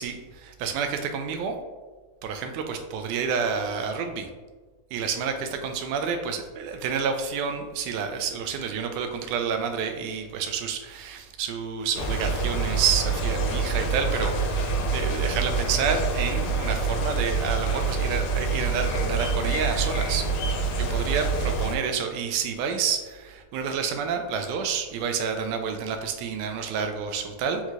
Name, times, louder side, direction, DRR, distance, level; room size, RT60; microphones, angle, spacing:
voice 1, 0.0-1.6 2.2-4.3 4.9-14.7 14.9-20.3 20.8-27.6, right 6 dB, 80° right, 6 dB, 1.9 m, -29 dB
sound 1, 12.0-21.8, right 4 dB, 80° left, 2.1 m, -26 dB
5.4 x 3.1 x 2.4 m, 1.3 s
omnidirectional pair, 3.6 m